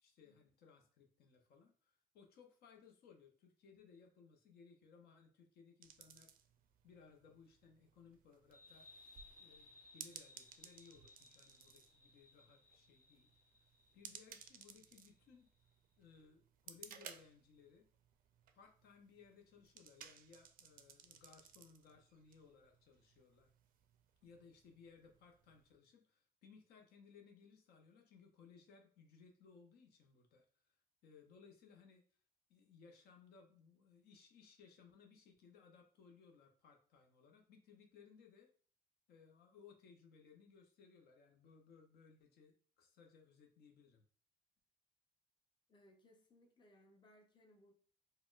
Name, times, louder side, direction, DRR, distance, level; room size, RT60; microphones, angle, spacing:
voice 1, 0.0-6.3 6.8-8.9 9.4-13.3 13.9-15.5 16.0-17.9 18.5-23.5 24.2-30.8 31.0-32.0 32.5-38.5 39.1-44.0, left 5 dB, 70° left, 3 dB, 0.6 m, -63 dB
sound 1, 5.8-25.7, right 8 dB, 55° right, 0.4 m, -60 dB
sound 2, 8.5-15.7, left 2 dB, 45° left, 1.4 m, -64 dB
voice 2, 45.7-47.7, left 1 dB, 25° left, 2 dB, 0.6 m, -67 dB
4.0 x 2.1 x 2.4 m, 0.43 s
cardioid pair, 110°, 17 cm